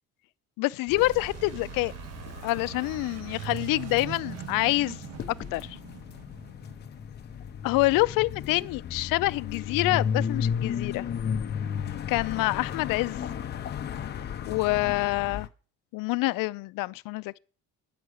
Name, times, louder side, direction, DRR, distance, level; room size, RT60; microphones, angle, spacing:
voice 1, 0.6-1.9 2.4-5.0 5.5-5.8 7.6-11.1 12.1-13.2 14.5-15.5 15.9-17.4, left 20 dB, 90° left, 0.5 m, -26 dB
sound 1, 0.9-15.5, left 7 dB, 30° left, 0.6 m, -35 dB
sound 2, 1.0-7.5, right 10 dB, 50° right, 0.7 m, -41 dB
9.5 x 8.0 x 6.4 m
cardioid pair, 175°, 32 cm